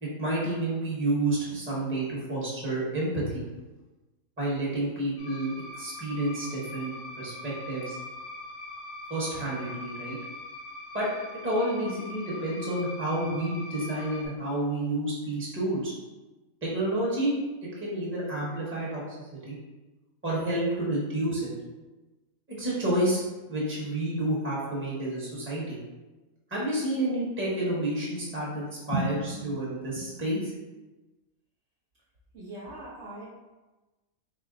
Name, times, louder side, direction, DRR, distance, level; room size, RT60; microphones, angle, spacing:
voice 1, 0.0-3.4 4.4-8.0 9.1-10.2 10.9-11.1 11.4-15.9 16.6-17.3 17.8-19.0 19.4-19.6 20.2-21.5 22.5-23.2 23.5-25.8 26.5-30.5, right 1 dB, 10° right, -6 dB, 0.8 m, -29 dB
sound 1, 5.2-14.3, left 2 dB, 60° left, 0.8 m, -42 dB
voice 2, 32.3-33.2, right 1 dB, 60° right, -6 dB, 0.8 m, -41 dB
3.8 x 2.0 x 3.8 m, 1.1 s
omnidirectional pair, 1.5 m